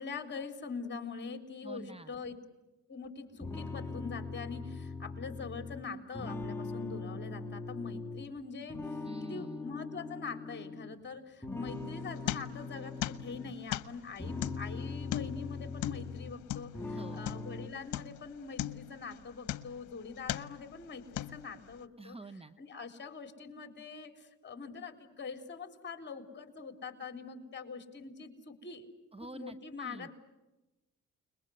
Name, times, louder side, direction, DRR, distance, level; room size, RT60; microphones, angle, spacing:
voice 1, 0.0-2.4 2.9-22.2 22.6-28.9 29.2-30.1, left 5 dB, 35° left, 7 dB, 4.0 m, -44 dB
voice 2, 1.6-2.2 9.0-9.7 16.9-17.3 22.0-22.6 29.1-30.1, right 2 dB, 20° right, 12 dB, 1.1 m, -47 dB
sound 1, 3.4-8.3 8.7-11.0 11.4-13.6 14.0-16.4 16.7-17.7, left 3 dB, 10° left, 2.0 m, -41 dB
sound 2, 11.7-12.8 13.0-17.6 17.9-18.3 18.6-19.9 20.2-20.7 21.2-21.7, left 13 dB, 80° left, 1.0 m, -38 dB
30.0 x 21.5 x 8.0 m, 1.0 s
cardioid pair, 90°, 30 cm